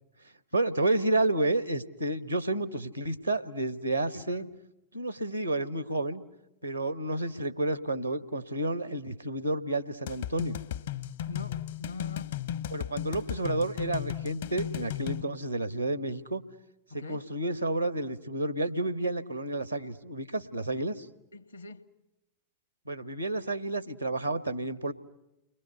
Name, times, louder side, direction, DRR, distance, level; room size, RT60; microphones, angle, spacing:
voice 1, 0.5-4.4 4.9-6.2 6.6-10.6 12.7-16.4 16.9-21.1 22.9-24.9, right 2 dB, 85° right, 12 dB, 1.3 m, -30 dB
voice 2, 4.1-4.5 11.3-12.3 16.9-17.3 21.3-21.8, left 3 dB, 85° left, 11 dB, 1.6 m, -43 dB
sound 1, 10.1-15.2, left 11 dB, 60° left, 0.9 m, -35 dB
30.0 x 22.5 x 8.1 m, 0.95 s
figure-of-eight pair, 90°, 0 cm